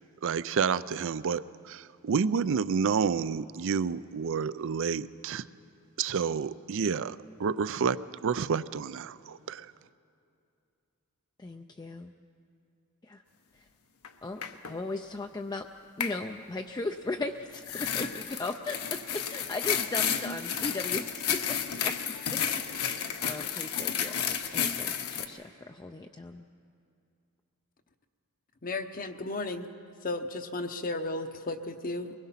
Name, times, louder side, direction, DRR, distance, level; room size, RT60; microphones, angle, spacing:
voice 1, 0.2-5.5 6.0-9.7, right 6 dB, 60° right, 17 dB, 0.4 m, -29 dB
voice 2, 11.4-12.1 13.1-13.2 14.2-15.7 16.0-22.4 22.8-26.4, left 2 dB, 20° left, 5 dB, 0.4 m, -37 dB
sound 1, 14.0-14.1 14.4-14.7 16.0-16.2 17.5-25.3, left 8 dB, 75° left, 1.0 m, -31 dB
voice 3, 28.6-29.7 30.0-32.1, left 2 dB, 40° left, 7 dB, 0.8 m, -34 dB
23.0 x 20.5 x 5.8 m, 2.6 s
head